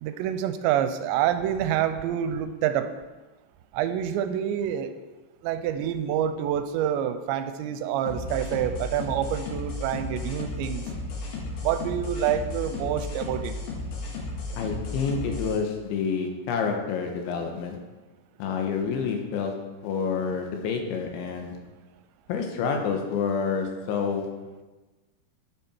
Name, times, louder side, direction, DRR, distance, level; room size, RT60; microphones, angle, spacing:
voice 1, 0.0-2.9 3.7-4.9 5.4-10.8 11.6-13.5, right 10 dB, 85° right, 10 dB, 2.8 m, -27 dB
sound 1, 8.1-15.6, left 3 dB, 75° left, 3.9 m, -34 dB
voice 2, 14.6-17.8 18.4-21.6 22.3-24.4, left 5 dB, 90° left, 3 dB, 3.5 m, -28 dB
10.5 x 9.0 x 4.4 m, 1.2 s
omnidirectional pair, 5.2 m